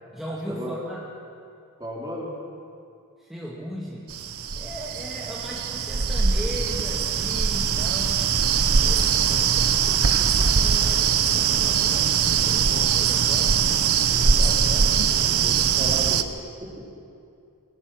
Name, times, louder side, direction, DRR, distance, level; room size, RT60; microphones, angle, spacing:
voice 1, 0.1-1.0 3.2-4.2 4.5-8.3 8.8-13.6, equal, ahead, -5 dB, 2.0 m, -37 dB
voice 2, 1.8-2.3 14.1-16.3 16.6-16.8, equal, 20° right, -2 dB, 3.6 m, -36 dB
sound 1, 4.1-16.2, right 7 dB, 80° right, 1.0 m, -21 dB
25.5 x 18.5 x 6.3 m, 2.5 s
head